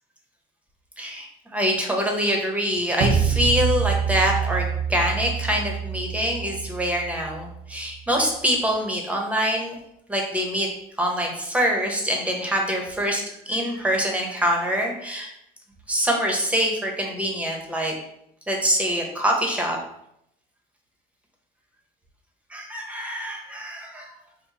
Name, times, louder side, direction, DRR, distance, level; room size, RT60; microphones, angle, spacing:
voice 1, 1.0-9.7 10.1-10.7 11.0-15.3 15.9-17.9 18.5-19.8 22.5-24.1, equal, 10° right, 0 dB, 1.0 m, -25 dB
sound 1, 3.0-8.0, right 7 dB, 85° right, 0.6 m, -26 dB
4.5 x 2.3 x 4.0 m, 0.77 s
cardioid pair, 110°, 17 cm